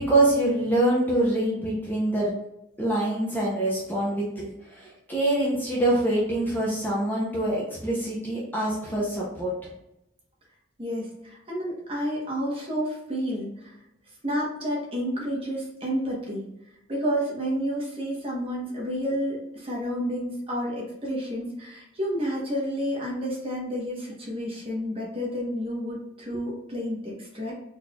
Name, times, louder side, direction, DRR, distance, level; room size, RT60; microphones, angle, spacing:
voice 1, 0.0-2.3 2.8-9.5, right 1 dB, 10° left, -5 dB, 0.6 m, -25 dB
voice 2, 10.8-13.8 14.2-16.4 16.9-27.5, equal, 30° right, -4 dB, 1.0 m, -30 dB
4.0 x 3.2 x 2.3 m, 0.87 s
head